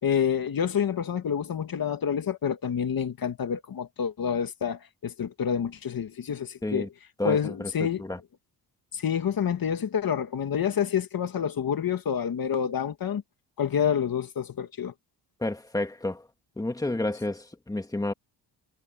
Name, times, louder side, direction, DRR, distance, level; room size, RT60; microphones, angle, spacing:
voice 1, 0.0-6.9 7.2-8.0 8.9-13.2 13.6-14.9, left 8 dB, 55° left, 2.1 m, -28 dB
voice 2, 7.2-7.7 8.0-8.2 15.4-16.2 16.6-18.1, left 2 dB, 10° left, 2.1 m, -30 dB
wide cardioid pair, 135°, 42 cm